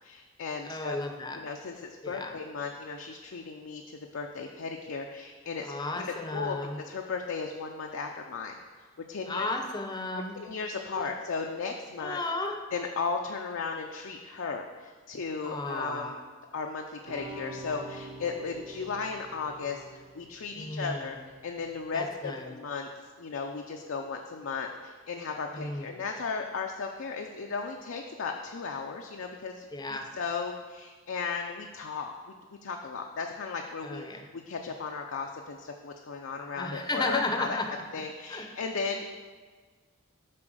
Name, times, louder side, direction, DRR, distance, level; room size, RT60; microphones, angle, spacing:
voice 1, 0.0-1.0 1.3-8.6 9.1-9.5 10.2-12.2 12.7-16.2 16.5-19.8 20.1-21.2 21.4-22.9 23.2-32.3 32.6-37.6 37.9-39.1, left 5 dB, 60° left, 2 dB, 0.5 m, -36 dB
voice 2, 0.6-1.4 2.0-2.3 5.6-6.8 9.3-10.4 10.9-11.1 12.0-12.6 15.4-16.2 20.6-21.1 21.9-22.5 25.5-25.9 29.7-30.1 33.8-34.3 36.6-37.8 38.3-38.5, left 2 dB, 20° left, 4 dB, 0.6 m, -34 dB
sound 1, 17.1-21.9, right 1 dB, 85° right, 2.1 m, -46 dB
7.6 x 4.3 x 6.2 m, 1.5 s
head